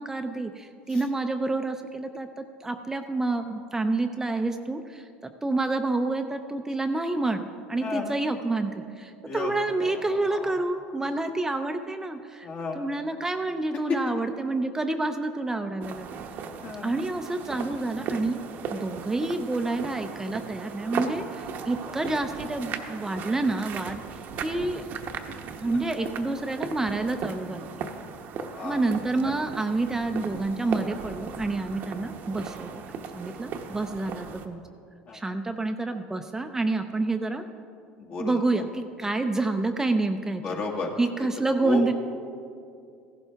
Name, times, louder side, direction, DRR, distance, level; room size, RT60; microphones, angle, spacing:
voice 1, 0.0-5.1 5.4-12.5 12.7-16.1 16.8-18.4 18.7-24.8 25.6-27.6 28.6-32.8 33.1-34.6 35.1-37.4 38.2-40.6 41.0-41.9, right 2 dB, 15° right, 6 dB, 0.6 m, -28 dB
voice 2, 12.4-12.8 16.6-16.9 24.5-24.8 28.4-28.8 35.1-35.2 38.1-38.6 40.4-40.9 41.6-41.8, left 4 dB, 50° left, 1 dB, 1.9 m, -33 dB
sound 1, 15.8-34.5, right 6 dB, 55° right, 0.9 m, -37 dB
14.5 x 11.5 x 3.5 m, 2.4 s
supercardioid pair, 95°, 4 cm